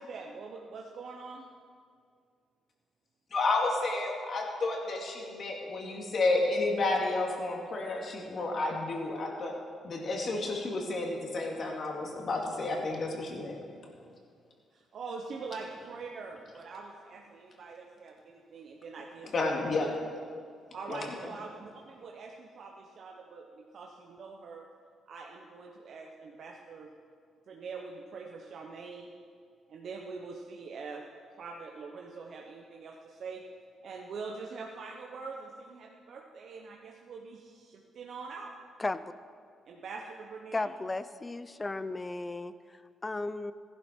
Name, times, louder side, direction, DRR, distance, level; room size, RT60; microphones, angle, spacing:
voice 1, 0.0-1.5 14.7-20.0 20.7-24.7 25.1-26.9 27.5-29.1 29.7-31.1 31.4-33.4 33.8-38.5 39.7-40.7, right 4 dB, 60° right, 0 dB, 1.0 m, -44 dB
voice 2, 3.3-9.5 9.8-13.6 14.0-14.1 19.3-19.9 20.9-21.0, left 2 dB, 50° left, 0 dB, 2.4 m, -31 dB
voice 3, 40.5-43.5, left 2 dB, 20° left, 14 dB, 0.5 m, -35 dB
15.5 x 11.0 x 4.6 m, 2.2 s
cardioid pair, 90°, 0 cm